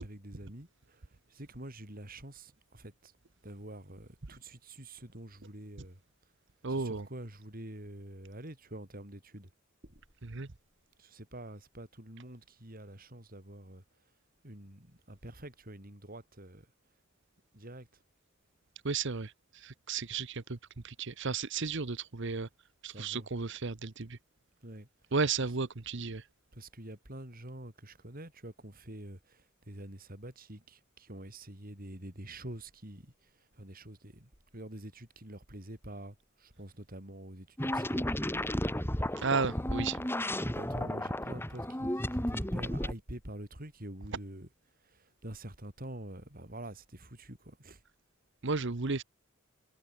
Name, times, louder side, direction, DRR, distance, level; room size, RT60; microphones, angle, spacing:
voice 1, 0.0-3.1 3.4-6.0 6.7-9.5 9.8-10.0 11.0-13.8 14.4-16.7 17.5-17.9 22.9-23.3 24.6-24.9 25.4-25.5 26.5-38.1 39.2-39.5 40.4-44.5 44.8-47.8, right 1 dB, 45° right, 5.3 m, -47 dB
voice 2, 6.6-7.1 10.2-10.5 18.8-20.6 20.8-22.5 22.8-24.2 25.1-26.3 39.2-40.0 48.4-49.0, right 4 dB, 65° right, 1.1 m, -33 dB
sound 1, 37.6-42.9, left 1 dB, 10° left, 3.8 m, -33 dB
head